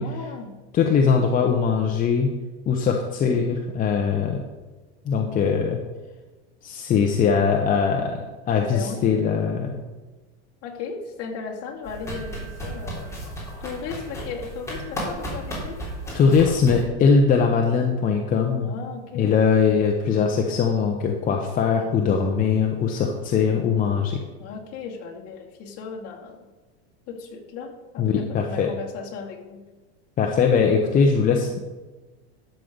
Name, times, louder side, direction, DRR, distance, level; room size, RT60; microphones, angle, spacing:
voice 1, 0.0-0.6 8.6-9.0 10.6-13.1 13.6-15.8 18.6-19.4 24.4-26.4 27.1-29.6, left 5 dB, 40° left, -1 dB, 2.5 m, -36 dB
voice 2, 0.7-2.3 2.7-4.4 5.0-5.8 6.6-8.2 8.5-9.8 16.1-18.7 19.1-24.2 28.0-28.7 30.2-31.6, left 6 dB, 25° left, 2 dB, 0.9 m, -21 dB
sound 1, 11.8-16.8, right 1 dB, 10° left, 3.7 m, -34 dB
12.0 x 7.7 x 5.2 m, 1.2 s
supercardioid pair, 150°, 35 cm